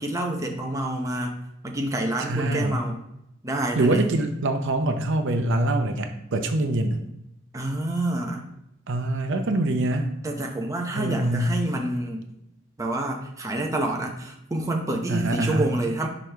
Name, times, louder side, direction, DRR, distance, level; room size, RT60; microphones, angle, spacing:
voice 1, 0.0-1.4 1.6-3.0 3.4-4.1 7.5-8.5 10.2-12.3 12.8-16.1, right 1 dB, 15° right, 1 dB, 0.7 m, -28 dB
voice 2, 2.2-2.8 3.8-7.0 8.9-10.1 11.0-11.6 15.1-15.8, right 2 dB, 65° right, 6 dB, 0.6 m, -24 dB
6.1 x 4.8 x 3.4 m, 0.81 s
head